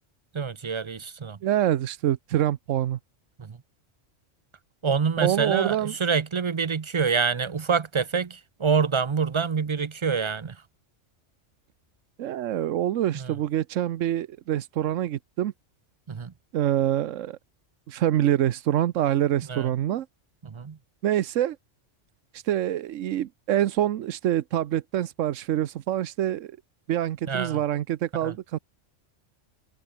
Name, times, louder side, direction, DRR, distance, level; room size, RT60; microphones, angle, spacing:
voice 1, 0.3-1.4 3.4-3.6 4.8-10.6 13.1-13.3 16.1-16.3 19.5-19.7 20.4-20.8 27.3-27.6 28.2-28.3, right 5 dB, 40° right, 0.4 m, -26 dB
voice 2, 1.4-3.0 5.2-5.9 12.2-15.5 16.5-17.4 17.9-20.1 21.0-21.6 22.3-26.5 26.9-28.6, right 12 dB, 90° right, 1.1 m, -25 dB
omnidirectional pair, 1.3 m